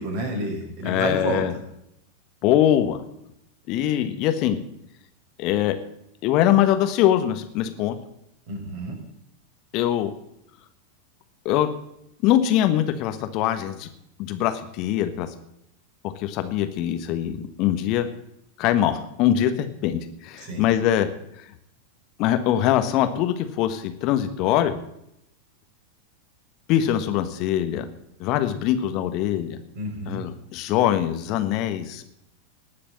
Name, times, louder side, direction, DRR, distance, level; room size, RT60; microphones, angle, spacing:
voice 1, 0.0-1.6 8.5-9.0 20.4-20.6 29.8-30.2, right 1 dB, 45° right, 2 dB, 5.5 m, -30 dB
voice 2, 0.8-1.5 2.4-3.0 3.7-4.6 5.4-5.8 6.2-8.0 9.7-10.1 11.4-11.7 12.2-13.9 14.2-15.3 16.2-18.1 18.6-21.1 22.2-24.7 26.7-27.9 28.2-29.6 30.1-32.1, left 11 dB, 40° left, 9 dB, 1.3 m, -22 dB
19.0 x 6.8 x 7.6 m, 0.77 s
figure-of-eight pair, 90°, 0 cm